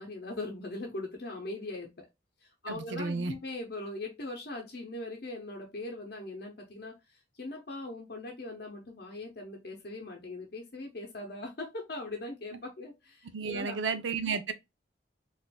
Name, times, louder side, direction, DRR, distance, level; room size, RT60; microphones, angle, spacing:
voice 1, 0.0-2.1 2.4-13.8, left 2 dB, 55° left, 0.7 m, -40 dB
voice 2, 2.7-3.3 13.3-14.5, right 5 dB, 75° right, 0.5 m, -32 dB
4.2 x 2.5 x 2.2 m
head